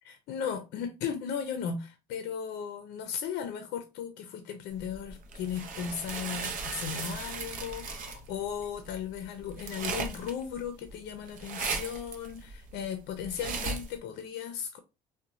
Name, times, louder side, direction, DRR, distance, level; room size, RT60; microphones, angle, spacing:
voice 1, 0.0-14.8, left 7 dB, 80° left, 0.5 m, -36 dB
sound 1, 4.8-14.0, right 5 dB, 55° right, 0.6 m, -37 dB
sound 2, 5.7-9.2, left 1 dB, 25° left, 0.8 m, -56 dB
2.9 x 2.1 x 2.5 m
cardioid pair, 110°, 17 cm